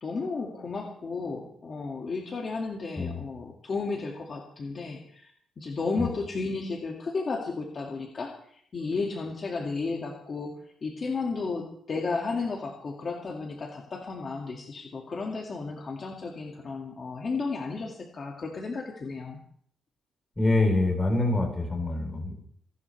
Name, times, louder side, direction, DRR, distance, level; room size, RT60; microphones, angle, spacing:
voice 1, 0.0-5.3 5.6-10.5 10.8-19.4, left 4 dB, 30° left, -1 dB, 2.1 m, -33 dB
voice 2, 20.4-22.3, left 2 dB, 10° left, 1 dB, 3.8 m, -25 dB
28.5 x 12.0 x 3.3 m, 0.62 s
cardioid pair, 165°, 0 cm